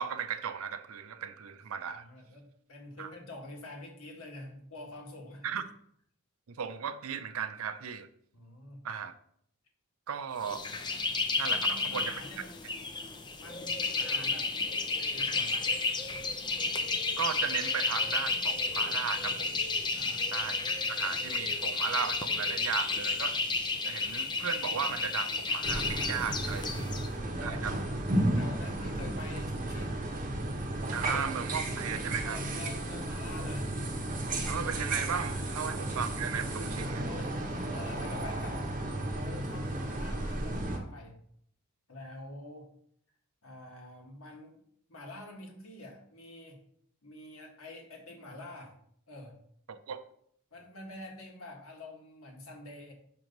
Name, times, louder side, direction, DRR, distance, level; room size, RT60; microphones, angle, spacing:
voice 1, 0.0-2.1 3.0-3.1 5.4-5.7 6.5-8.1 8.8-9.1 10.1-10.6 11.4-12.2 17.2-19.6 20.3-20.6 20.9-23.4 23.8-27.0 27.4-27.8 30.9-32.4 34.5-37.1 49.7-50.0, right 7 dB, 70° right, 12 dB, 0.5 m, -36 dB
voice 2, 1.9-2.4 2.7-5.6 8.3-8.8 11.4-12.7 13.4-14.5 15.1-15.7 19.9-20.3 27.5-27.6 28.3-30.1 32.3-33.7 35.5-35.8 37.0-41.2 41.9-42.7 43.4-44.6 44.9-46.6 47.0-48.7 49.1-49.4 50.5-52.9, left 2 dB, 70° left, 1 dB, 1.4 m, -47 dB
sound 1, 10.4-27.1, left 4 dB, 20° left, 0.4 m, -32 dB
sound 2, 25.6-40.8, right 1 dB, 35° right, 0.8 m, -33 dB
6.1 x 3.0 x 5.2 m, 0.66 s
head